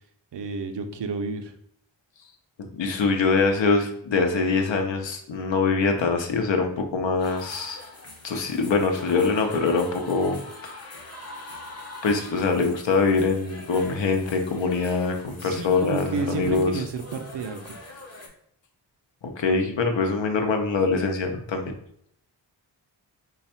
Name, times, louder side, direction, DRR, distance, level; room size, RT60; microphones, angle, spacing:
voice 1, 0.3-1.5 15.4-17.8, right 4 dB, 70° right, 6 dB, 0.6 m, -31 dB
voice 2, 2.6-7.8 8.2-11.1 12.0-16.7 19.4-21.7, left 4 dB, 75° left, 4 dB, 0.7 m, -24 dB
sound 1, 7.2-18.3, left 2 dB, 35° left, 0.7 m, -43 dB
3.3 x 2.4 x 4.2 m, 0.68 s
wide cardioid pair, 100°, 45 cm